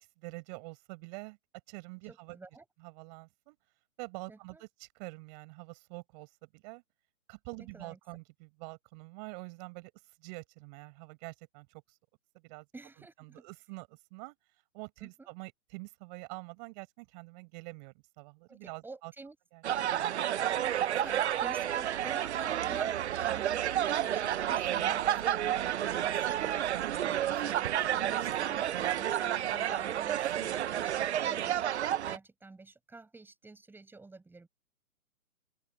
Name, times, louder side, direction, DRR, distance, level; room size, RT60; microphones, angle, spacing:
voice 1, 0.2-1.4 1.7-2.4 2.8-3.6 4.0-6.8 7.3-12.0 12.3-12.7 13.2-14.4 14.7-19.1 19.5-19.6 26.9-27.1, right 30 dB, 30° right, 7.0 m, -46 dB
voice 2, 2.1-2.7 4.3-4.6 7.6-8.0 12.7-13.4 15.0-15.3 18.5-19.4 20.9-34.5, right 3 dB, 5° right, 7.5 m, -50 dB
sound 1, 19.6-32.2, right 11 dB, 50° right, 1.0 m, -30 dB
open air
hypercardioid pair, 140°, 42 cm